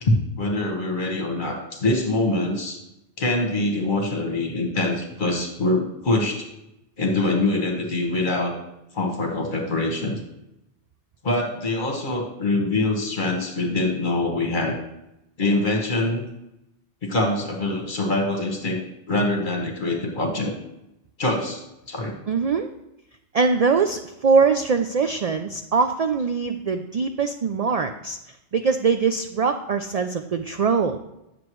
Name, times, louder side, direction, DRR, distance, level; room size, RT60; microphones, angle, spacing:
voice 1, 0.0-2.8 3.2-6.5 7.0-8.6 8.9-10.2 11.2-14.8 15.4-16.2 17.0-18.8 19.1-20.5 21.2-21.6 21.9-22.2, left 2 dB, 45° left, 2 dB, 1.4 m, -24 dB
voice 2, 22.3-22.7 23.3-28.2 28.5-31.0, right 5 dB, 65° right, 7 dB, 0.4 m, -22 dB
9.5 x 6.8 x 3.1 m, 0.88 s
omnidirectional pair, 1.2 m